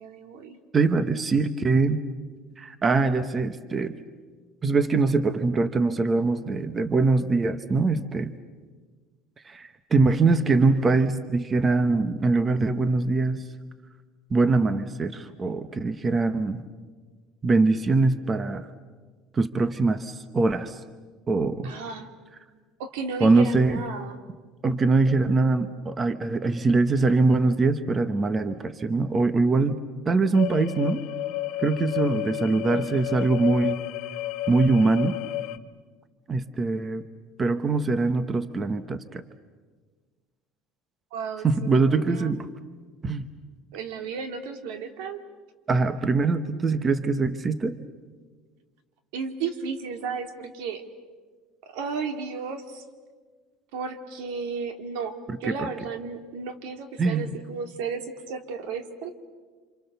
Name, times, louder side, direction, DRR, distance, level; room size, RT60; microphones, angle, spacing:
voice 1, 0.0-0.6 21.6-22.1 22.8-24.2 26.4-26.8 41.1-42.3 43.7-45.2 49.1-50.9 51.6-52.8 53.7-59.1, right 5 dB, 85° right, 7 dB, 2.5 m, -34 dB
voice 2, 0.7-2.0 2.6-3.9 4.6-8.3 9.4-13.4 14.3-16.6 17.4-18.7 19.3-20.8 21.3-21.7 23.2-23.8 24.6-29.8 30.1-31.0 31.6-33.8 34.5-35.2 36.3-37.0 37.4-39.2 41.4-42.5 43.0-43.3 45.7-47.8 55.5-55.7 57.0-57.3, right 3 dB, 20° right, 11 dB, 0.9 m, -23 dB
sound 1, 30.3-35.6, left 16 dB, 55° left, 1.0 m, -31 dB
29.0 x 27.0 x 6.9 m, 1.4 s
cardioid pair, 170°, 0 cm